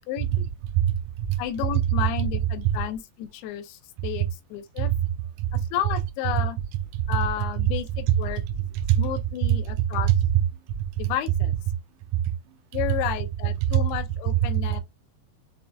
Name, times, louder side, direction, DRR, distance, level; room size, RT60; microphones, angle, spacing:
voice 1, 0.1-0.5 1.4-4.9 5.5-6.6 7.1-8.4 9.0-10.1 11.0-11.5 12.7-14.8, left 11 dB, 85° left, 2.5 m, -32 dB
voice 2, 0.7-1.3 2.6-2.7 4.8-5.0 5.4-5.6 8.8-9.0 9.5-9.6 12.1-12.2 13.7-13.8, right 11 dB, 85° right, 1.8 m, -23 dB
6.2 x 2.2 x 2.5 m
omnidirectional pair, 4.4 m